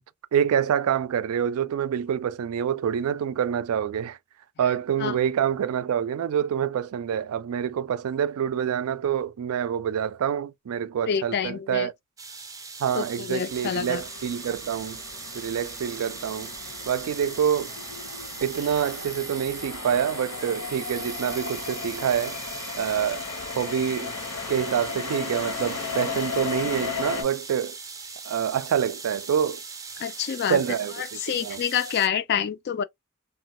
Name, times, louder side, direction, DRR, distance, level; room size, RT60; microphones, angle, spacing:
voice 1, 0.3-4.2 4.6-11.9 12.8-15.0 15.3-16.5 16.9-17.7 18.4-22.4 22.8-23.2 23.6-24.2 24.5-27.8 28.3-29.6 30.5-31.6, right 8 dB, 80° right, 0.3 m, -26 dB
voice 2, 11.1-11.9 12.9-14.0 30.0-30.6 31.2-32.8, left 8 dB, 50° left, 0.3 m, -27 dB
sound 1, 12.2-32.1, right 5 dB, 15° right, 0.5 m, -40 dB
sound 2, 13.5-27.2, left 6 dB, 80° left, 0.7 m, -36 dB
2.9 x 2.1 x 2.9 m
head